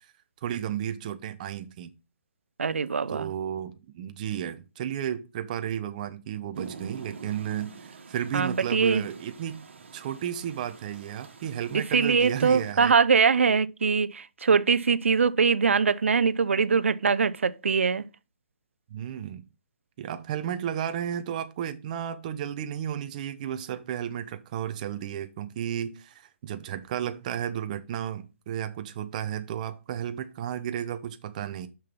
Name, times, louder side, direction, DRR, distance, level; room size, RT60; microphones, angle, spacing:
voice 1, 0.4-1.9 3.1-9.6 9.9-13.0 18.9-19.4 20.0-31.7, right 10 dB, 40° right, 0.9 m, -33 dB
voice 2, 2.6-3.3 8.3-9.0 11.7-18.1, right 5 dB, 90° right, 0.7 m, -23 dB
Rain, 6.5-12.7, right 5 dB, 75° right, 2.1 m, -46 dB
6.4 x 6.1 x 5.4 m
hypercardioid pair, 155°, 7 cm